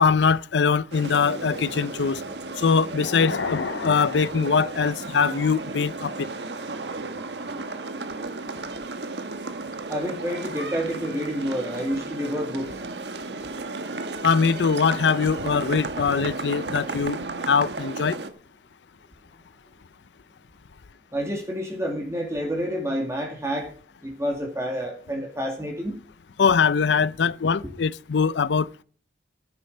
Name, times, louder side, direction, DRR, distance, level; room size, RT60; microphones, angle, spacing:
voice 1, 0.0-2.2 2.6-6.3 14.2-17.2 17.5-18.2 26.4-28.8, left 5 dB, 85° left, 0.5 m, -22 dB
sound 1, 0.9-18.3, right 3 dB, 80° right, 1.4 m, -34 dB
voice 2, 9.9-12.8 21.1-23.7 24.0-26.0, equal, 15° right, 2.2 m, -29 dB
14.0 x 9.9 x 5.3 m
head